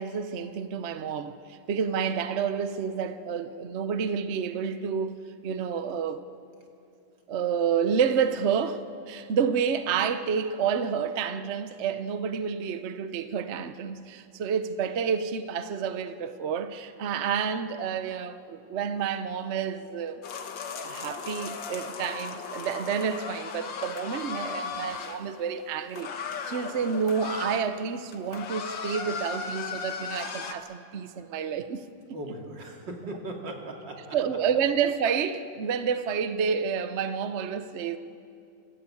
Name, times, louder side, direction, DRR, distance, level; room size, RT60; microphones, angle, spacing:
voice 1, 0.0-6.2 7.3-20.2 20.8-31.9 34.1-38.0, right 7 dB, 50° right, 0.9 m, -29 dB
sound 1, 20.2-25.2 25.9-27.7 28.0-30.5, left 5 dB, 80° left, 2.0 m, -36 dB
voice 2, 32.1-34.2, right 1 dB, 75° right, 3.2 m, -38 dB
29.5 x 14.5 x 8.5 m
omnidirectional pair, 2.0 m